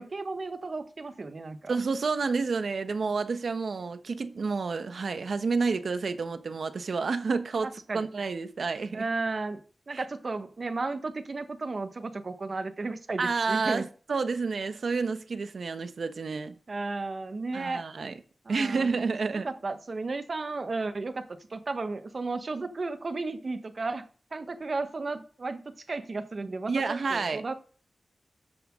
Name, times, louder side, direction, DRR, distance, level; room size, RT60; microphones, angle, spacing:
voice 1, 0.0-1.7 7.9-8.1 8.9-9.6 9.9-13.8 16.7-17.9 18.4-18.9 19.3-27.5, right 3 dB, 55° right, 1.4 m, -34 dB
voice 2, 1.7-9.0 9.9-10.0 13.2-16.5 17.5-18.1 18.5-19.5 26.7-27.4, right 4 dB, 75° right, 1.2 m, -29 dB
13.5 x 8.1 x 3.8 m
wide cardioid pair, 65°, 0 cm